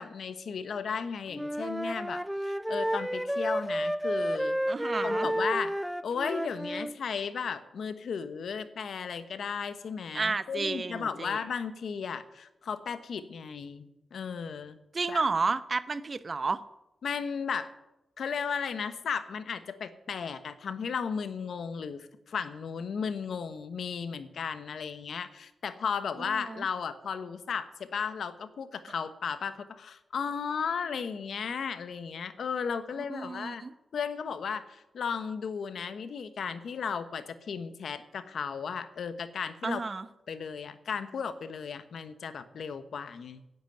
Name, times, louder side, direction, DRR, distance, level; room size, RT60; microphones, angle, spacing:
voice 1, 0.0-4.6 5.0-5.7 6.0-14.8 15.1-15.2 17.0-17.7 18.2-33.6 33.9-39.8 40.3-43.4, left 6 dB, 75° left, 12 dB, 1.0 m, -35 dB
Wind instrument woodwind instrument, 1.3-7.0, equal, 5° right, 0.4 m, -31 dB
voice 2, 4.7-5.3 10.1-11.4 14.9-16.6 26.3-26.7 33.1-33.7 39.6-40.1, right 4 dB, 45° right, 15 dB, 0.8 m, -31 dB
10.5 x 8.1 x 9.1 m, 0.91 s
cardioid pair, 55°, 0 cm